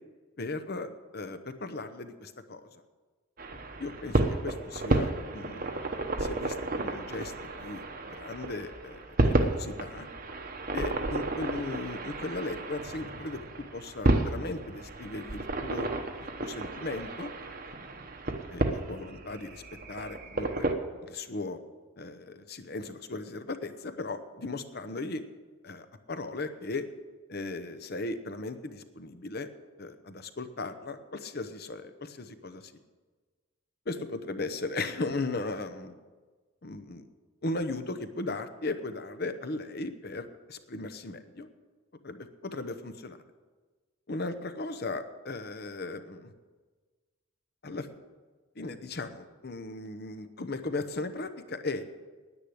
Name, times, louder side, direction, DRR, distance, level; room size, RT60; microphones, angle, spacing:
voice 1, 0.4-2.8 3.8-10.1 10.7-15.9 16.2-17.3 18.5-19.6 19.9-20.7 21.0-21.6 22.0-25.2 25.6-26.9 27.3-29.5 29.8-32.7 33.9-35.9 36.6-37.1 37.4-41.5 42.0-43.2 44.1-46.3 47.6-47.9 48.6-51.9, left 2 dB, 45° left, 10 dB, 0.8 m, -37 dB
sound 1, 3.4-20.7, right 2 dB, 40° right, 1.0 m, -32 dB
10.0 x 9.9 x 7.8 m, 1.4 s
head